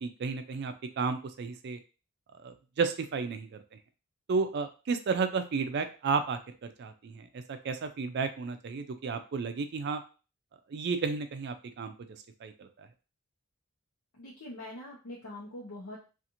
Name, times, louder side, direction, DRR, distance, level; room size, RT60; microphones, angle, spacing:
voice 1, 0.0-1.8 2.4-3.6 4.3-10.0 10.7-11.9 12.4-12.9, right 5 dB, 50° right, 9 dB, 0.4 m, -32 dB
voice 2, 14.1-16.0, left 1 dB, 85° left, -5 dB, 0.8 m, -43 dB
2.5 x 2.4 x 2.8 m, 0.33 s
head